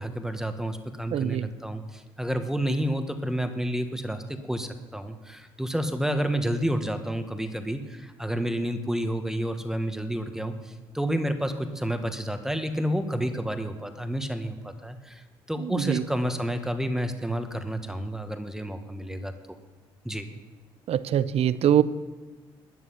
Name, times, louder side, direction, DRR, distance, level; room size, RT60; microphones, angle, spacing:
voice 1, 0.0-19.3 20.0-20.3, equal, 5° right, 7 dB, 1.5 m, -30 dB
voice 2, 1.1-1.5 15.7-16.0 20.9-21.8, right 10 dB, 60° right, 17 dB, 0.7 m, -23 dB
13.0 x 9.6 x 5.8 m, 1.3 s
hypercardioid pair, 55°, 12 cm